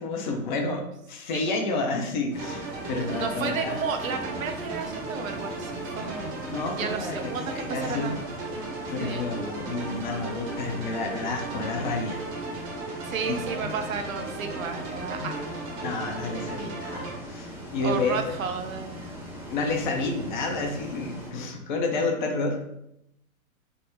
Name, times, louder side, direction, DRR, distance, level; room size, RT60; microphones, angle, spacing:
voice 1, 0.0-3.8 6.5-8.1 8.9-12.2 13.3-13.4 15.8-18.2 19.5-22.7, left 3 dB, 35° left, 3 dB, 0.5 m, -30 dB
Bus, 2.3-21.3, equal, 5° right, 0.6 m, -40 dB
sound 1, 2.4-17.1, right 3 dB, 35° right, 0.8 m, -36 dB
voice 2, 3.1-8.2 9.0-9.2 13.0-15.6 17.8-19.1, right 5 dB, 70° right, 6 dB, 0.6 m, -33 dB
3.4 x 2.0 x 2.9 m, 0.78 s
figure-of-eight pair, 110°, 42 cm